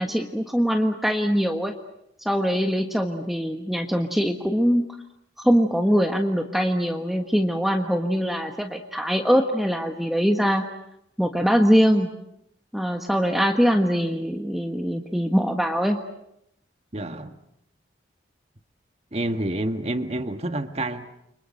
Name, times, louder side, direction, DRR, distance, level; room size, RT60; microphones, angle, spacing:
voice 1, 0.0-1.7 2.2-4.9 5.4-10.6 11.2-12.1 12.7-16.0, equal, ahead, 1.3 m, -22 dB
voice 2, 16.9-17.4 19.1-21.1, right 1 dB, 35° right, 1.5 m, -28 dB
30.0 x 25.0 x 6.5 m
head